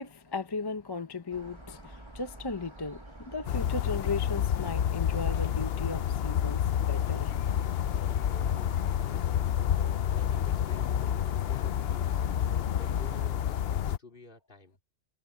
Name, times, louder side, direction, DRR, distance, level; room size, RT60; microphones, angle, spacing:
voice 1, 0.0-7.4, left 3 dB, 25° left, 0.7 m, -36 dB
sound 1, 1.3-13.3, right 1 dB, 25° right, 1.9 m, -48 dB
sound 2, 3.5-14.0, left 10 dB, 65° left, 0.8 m, -29 dB
voice 2, 8.1-9.5 10.0-12.3 12.7-14.8, left 2 dB, 50° left, 2.9 m, -52 dB
omnidirectional pair, 1.2 m